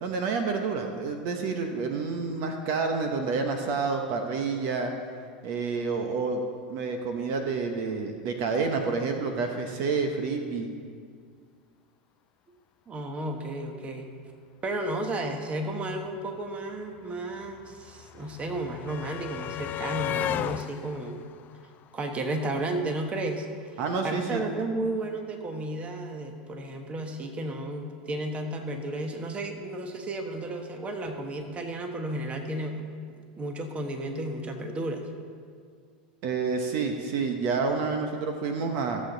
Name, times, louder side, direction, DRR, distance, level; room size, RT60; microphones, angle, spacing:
voice 1, 0.0-4.9 5.4-6.4 6.7-10.7 23.8-24.4 36.2-39.0, right 4 dB, 55° right, 4 dB, 1.0 m, -29 dB
voice 2, 12.9-14.1 14.6-21.2 21.9-23.5 24.0-32.9 33.4-35.0, right 1 dB, 25° right, 4 dB, 1.3 m, -33 dB
sound 1, 16.1-16.2 16.3-22.5 23.7-23.8 24.1-24.2, left 11 dB, 40° left, 0.3 m, -36 dB
15.5 x 7.4 x 4.0 m, 2.1 s
hypercardioid pair, 105°, 5 cm